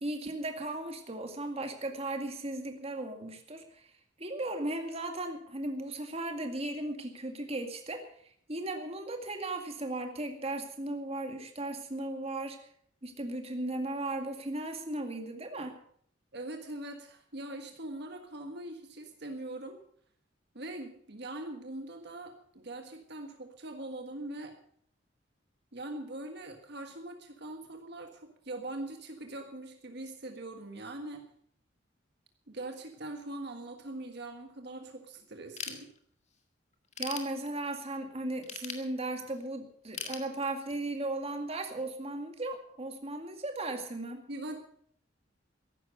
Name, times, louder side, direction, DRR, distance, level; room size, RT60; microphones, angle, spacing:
voice 1, 0.0-3.9 4.2-8.0 8.5-12.6 13.0-15.8 37.0-44.2, right 2 dB, 35° right, 5 dB, 2.1 m, -36 dB
voice 2, 16.3-19.8 20.5-24.6 25.7-31.3 32.5-35.9 44.3-44.6, right 2 dB, 60° right, 4 dB, 1.6 m, -42 dB
Ratchet pawl / Tools, 35.6-36.4 36.7-37.9 38.4-39.4 39.9-40.9, left 6 dB, 40° left, 1.9 m, -40 dB
15.0 x 11.5 x 6.5 m, 0.63 s
head